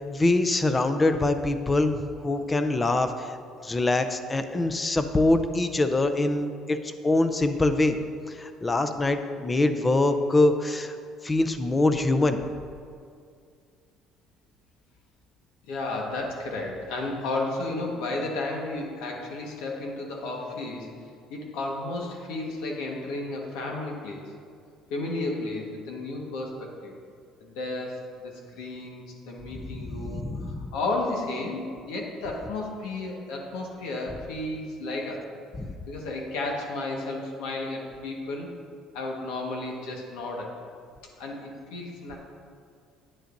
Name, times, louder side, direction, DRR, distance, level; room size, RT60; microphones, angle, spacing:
voice 1, 0.1-3.4 3.6-8.0 8.3-11.0 11.2-12.4 29.6-30.7 35.6-35.7, left 2 dB, 20° left, 9 dB, 0.5 m, -24 dB
voice 2, 15.6-21.0 21.3-24.2 24.9-26.9 27.4-35.3 35.9-38.5 38.9-40.6 41.2-42.2, left 2 dB, 90° left, 0 dB, 1.4 m, -33 dB
9.8 x 9.0 x 2.6 m, 2.2 s
cardioid pair, 115°, 0 cm